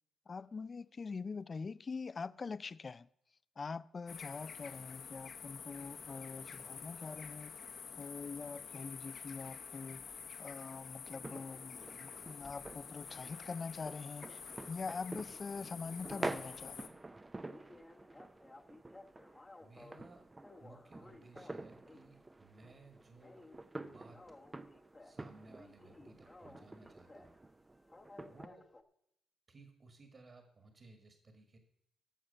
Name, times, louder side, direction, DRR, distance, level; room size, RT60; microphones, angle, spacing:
voice 1, 0.3-3.1 3.6-7.6 8.0-14.4 14.7-17.0, left 4 dB, 35° left, 0.4 m, -44 dB
sound 1, 4.1-16.9, left 6 dB, 55° left, 1.1 m, -49 dB
sound 2, 10.1-10.3 12.4-12.8 13.3-15.4 15.7-15.9 16.2-16.3 16.6-16.7 17.0-17.1 17.5-20.1 20.4-22.2 22.5-22.8 23.1-25.2 25.5-27.4 27.9-28.8, left 2 dB, 20° left, 1.0 m, -58 dB
sound 3, 11.0-28.5, right 2 dB, 20° right, 0.5 m, -49 dB
voice 2, 19.6-20.3 20.6-24.2 25.0-27.4 28.2-28.7 29.5-31.6, right 2 dB, 40° right, 1.7 m, -59 dB
13.5 x 6.2 x 6.8 m
cardioid pair, 90°, 0 cm